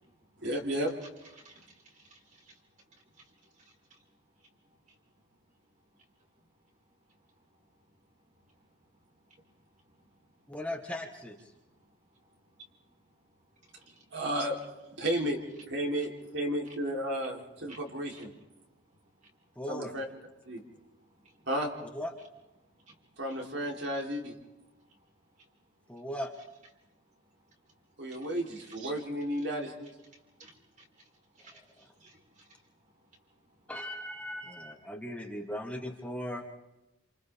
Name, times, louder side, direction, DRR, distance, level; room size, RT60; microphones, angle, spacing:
voice 1, 0.4-0.9 14.1-14.5 15.0-15.4 15.7-18.3 19.7-20.1 20.5-20.6 21.5-21.7 23.2-24.3 28.0-29.9, equal, 65° right, 0 dB, 3.5 m, -33 dB
voice 2, 1.4-2.6 3.2-3.3 3.9-4.0 13.7-14.0 16.0-16.1 17.7-17.8 18.1-18.2 21.1-21.4 22.9-23.0 23.3-23.4 28.1-28.3 30.4-30.5 30.8-30.9 31.3-32.5, right 2 dB, 40° right, 0 dB, 4.3 m, -57 dB
voice 3, 10.5-11.4 19.6-19.9 21.9-22.1 25.9-26.3 33.7-36.4, equal, 5° left, 1 dB, 1.5 m, -38 dB
28.5 x 28.0 x 3.6 m, 0.99 s
head